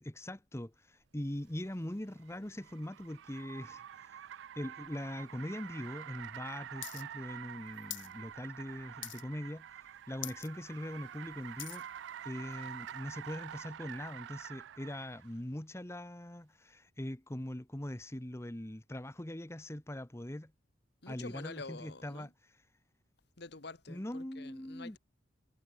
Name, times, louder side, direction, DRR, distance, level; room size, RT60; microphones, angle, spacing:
voice 1, 0.0-4.2 4.5-11.8 12.2-20.5 21.1-22.3 23.9-25.0, left 1 dB, 15° left, 1.1 m, -42 dB
Car, 1.4-15.3, right 9 dB, 70° right, 0.3 m, -48 dB
sound 1, 6.8-7.0 7.3-8.1 8.5-8.7 9.0-9.5 9.8-9.9 10.1-10.5 10.9-11.9 12.5-12.6, left 16 dB, 85° left, 1.4 m, -44 dB
voice 2, 21.0-22.3 23.4-25.0, left 3 dB, 60° left, 1.6 m, -47 dB
head